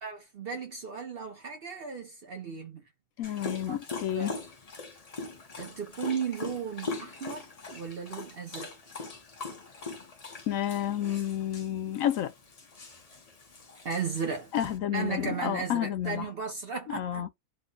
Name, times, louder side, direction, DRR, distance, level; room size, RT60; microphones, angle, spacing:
voice 1, 0.0-2.8 3.3-3.4 3.7-3.8 4.1-4.4 5.6-8.8 13.8-14.5 14.9-17.3, right 6 dB, 55° right, 0.7 m, -35 dB
voice 2, 3.2-4.3 10.5-12.3 14.5-16.3 16.9-17.3, left 11 dB, 70° left, 0.9 m, -30 dB
Dog, 3.2-14.8, left 3 dB, 35° left, 0.7 m, -42 dB
3.1 x 2.1 x 3.7 m
omnidirectional pair, 1.6 m